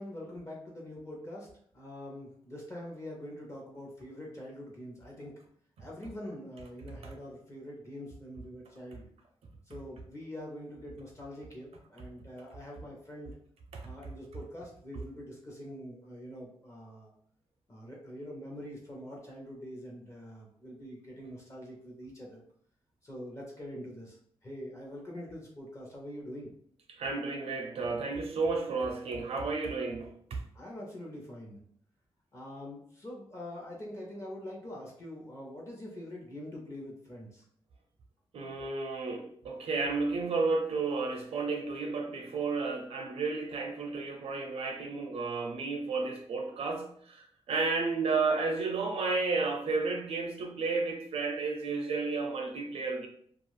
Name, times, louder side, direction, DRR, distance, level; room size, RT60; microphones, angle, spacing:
voice 1, 0.0-1.5 1.7-5.3 5.8-9.1 9.7-13.3 13.8-17.1 17.7-22.4 23.0-26.5 30.5-31.6 32.3-37.4, left 1 dB, 30° left, -2 dB, 0.7 m, -44 dB
voice 2, 27.0-30.4 38.3-53.1, right 4 dB, 80° right, 4 dB, 0.5 m, -32 dB
2.4 x 2.4 x 3.1 m, 0.63 s
wide cardioid pair, 105°, 10 cm